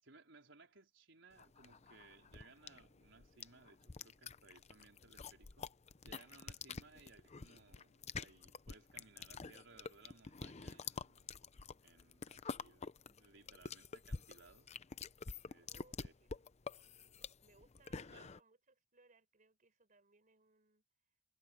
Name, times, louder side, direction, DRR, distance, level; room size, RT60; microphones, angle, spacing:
voice 1, 0.0-5.7 6.0-11.3 11.8-14.7 15.4-15.7 16.0-16.1 18.1-18.3, right 3 dB, 75° right, 4.4 m, -63 dB
sound 1, 1.4-18.4, left 5 dB, 35° left, 0.7 m, -48 dB
voice 2, 15.7-20.8, right 3 dB, 45° right, 4.6 m, -71 dB
head